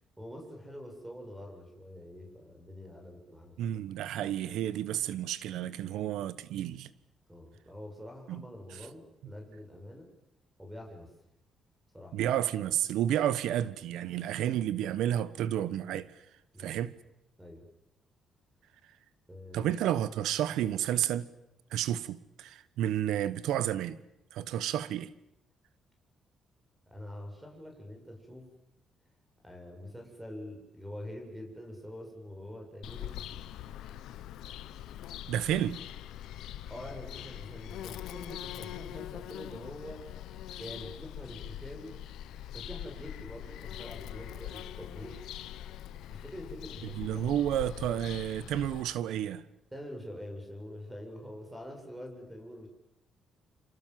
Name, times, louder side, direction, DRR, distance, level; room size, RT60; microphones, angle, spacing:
voice 1, 0.2-3.6 7.3-10.1 10.6-11.1 11.9-12.2 16.5-16.8 17.4-17.7 19.3-19.7 26.9-28.5 29.4-33.5 36.5-40.0 40.6-42.0 42.5-45.1 46.1-47.3 49.7-52.7, left 1 dB, 10° right, 7.8 m, -45 dB
voice 2, 3.6-6.9 8.3-8.4 12.1-16.1 16.6-16.9 19.5-21.3 21.7-24.0 24.3-25.1 35.3-35.8 47.0-49.4, right 11 dB, 85° right, 1.3 m, -31 dB
Bird vocalization bird call bird song, 32.8-48.8, left 12 dB, 85° left, 1.2 m, -43 dB
28.0 x 26.5 x 7.7 m
cardioid pair, 90°, 0 cm